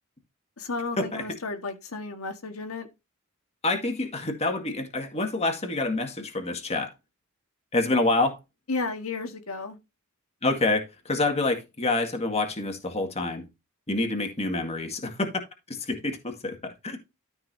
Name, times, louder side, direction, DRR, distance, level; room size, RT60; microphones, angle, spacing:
voice 1, 0.6-2.9 8.7-9.8, left 3 dB, 75° left, 1.7 m, -33 dB
voice 2, 3.6-6.9 7.7-8.4 10.4-13.4 13.9-15.3 15.7-17.0, left 2 dB, 30° left, 1.9 m, -27 dB
13.0 x 5.6 x 2.7 m
head